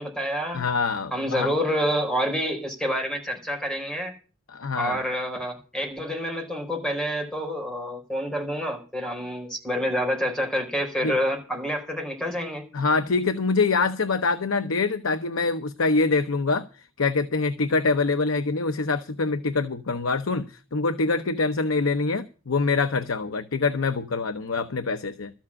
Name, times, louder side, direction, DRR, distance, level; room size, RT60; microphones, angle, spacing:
voice 1, 0.0-0.6 1.1-4.1 4.8-12.7, equal, 5° left, 4.1 m, -28 dB
voice 2, 0.5-1.5 4.5-5.0 11.0-11.2 12.7-16.7 17.0-25.3, left 4 dB, 90° left, 0.8 m, -25 dB
13.0 x 7.3 x 8.5 m
head